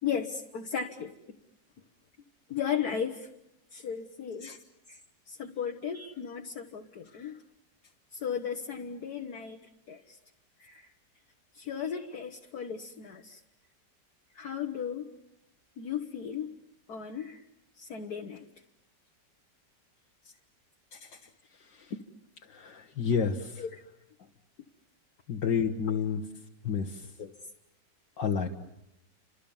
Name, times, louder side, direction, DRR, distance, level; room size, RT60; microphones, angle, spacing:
voice 1, 0.0-1.1 2.5-3.3 3.7-4.5 4.9-5.0 5.3-7.4 8.1-9.6 9.9-10.2 10.6-10.9 11.6-13.4 14.4-15.1 15.8-16.5 16.9-17.4 17.8-18.5 23.6-23.8 25.9-26.0 27.2-27.3, left 7 dB, 60° left, 3 dB, 1.7 m, -35 dB
voice 2, 20.9-21.3 21.6-21.9 22.4-23.7 25.3-26.2 26.6-27.1 28.2-28.5, left 6 dB, 75° left, 1 dB, 2.0 m, -31 dB
30.0 x 26.5 x 7.2 m, 0.85 s
omnidirectional pair, 2.0 m